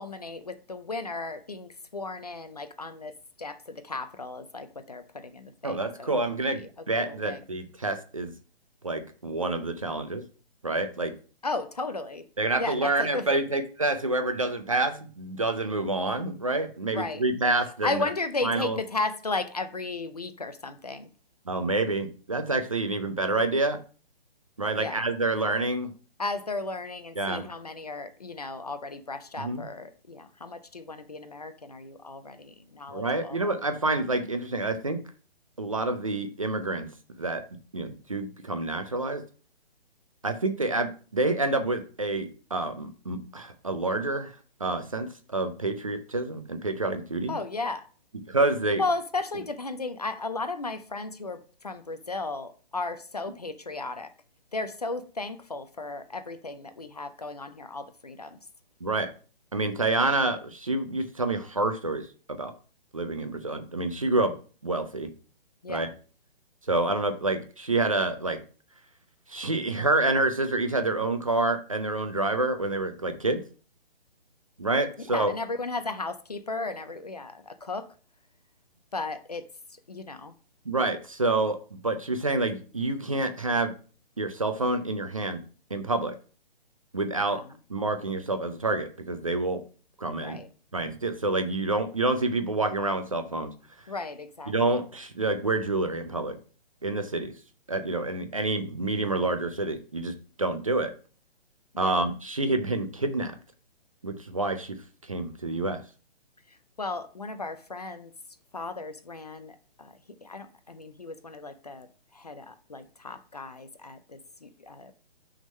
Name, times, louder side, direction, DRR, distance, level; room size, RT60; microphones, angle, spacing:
voice 1, 0.0-3.1 3.4-6.1 6.4-6.7 7.0-7.4 11.4-12.2 12.6-13.3 16.9-17.2 17.8-21.1 24.8-25.1 26.2-33.4 47.3-47.9 48.8-54.1 54.5-58.4 65.6-65.9 75.1-77.9 78.9-79.5 79.9-80.3 87.3-87.5 90.2-90.5 93.9-94.8 101.7-102.0 106.8-108.1 108.5-109.9 110.2-114.9, left 3 dB, 40° left, 0.5 m, -35 dB
voice 2, 5.6-8.3 8.8-10.2 10.6-11.1 12.4-18.1 18.4-18.8 21.5-23.8 24.6-25.9 27.2-27.5 29.4-29.7 32.9-35.0 35.6-36.9 37.2-37.4 37.7-39.2 40.2-44.3 44.6-47.4 48.3-48.8 58.8-59.1 59.5-62.5 62.9-64.3 64.6-65.1 65.7-65.9 66.7-68.4 69.3-73.4 74.6-75.3 80.7-83.7 84.2-85.4 85.7-86.2 86.9-87.4 87.7-89.6 90.0-90.4 90.7-93.5 94.5-96.4 96.8-97.3 97.7-100.1 100.4-100.9 101.8-103.3 104.0-104.8 105.1-105.8, right 2 dB, 35° right, 0.5 m, -28 dB
6.2 x 3.6 x 5.3 m
hypercardioid pair, 180°, 31 cm